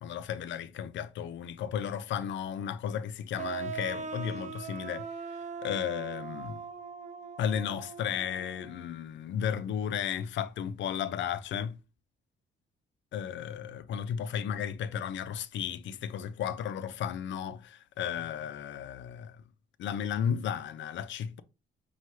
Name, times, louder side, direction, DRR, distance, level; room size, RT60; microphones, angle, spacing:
voice 1, 0.0-5.1 5.6-6.6 7.4-11.7 13.1-19.4 19.8-21.4, left 8 dB, 70° left, 0.5 m, -34 dB
sound 1, 3.4-8.9, right 5 dB, 35° right, 0.5 m, -40 dB
5.5 x 2.3 x 3.1 m
cardioid pair, 90°, 20 cm